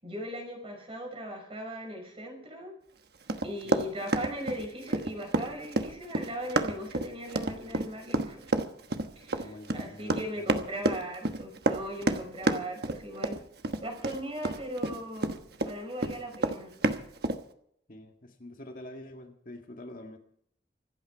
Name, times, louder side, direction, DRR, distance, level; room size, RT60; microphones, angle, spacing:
voice 1, 0.0-2.8 3.4-8.5 9.2-13.4 13.8-15.3 15.6-16.7, equal, 30° right, 3 dB, 5.7 m, -38 dB
Run, 3.3-15.7 16.0-17.4, right 2 dB, 60° right, 1.2 m, -29 dB
voice 2, 9.4-10.6 17.9-20.2, left 1 dB, 50° left, 3 dB, 1.9 m, -46 dB
26.0 x 9.0 x 4.7 m, 0.69 s
head